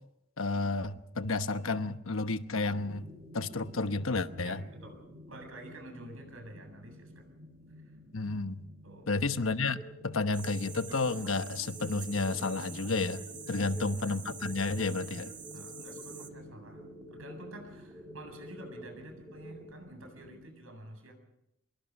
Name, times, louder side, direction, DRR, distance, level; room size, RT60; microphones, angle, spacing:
voice 1, 0.4-4.6 8.1-8.6 9.1-13.2 13.5-15.3, left 3 dB, 75° left, 1.1 m, -31 dB
sound 1, 2.7-20.5, equal, 50° right, 4.5 m, -52 dB
voice 2, 4.4-5.0 5.3-7.3 7.8-7.9 8.8-9.1 13.5-14.0 14.3-14.8 15.1-16.8 17.1-21.1, right 1 dB, 80° right, 7.9 m, -49 dB
sound 2, 9.7-19.7, left 1 dB, 5° left, 1.6 m, -50 dB
sound 3, 10.3-16.3, right 6 dB, 20° right, 1.4 m, -47 dB
25.5 x 22.5 x 5.4 m
head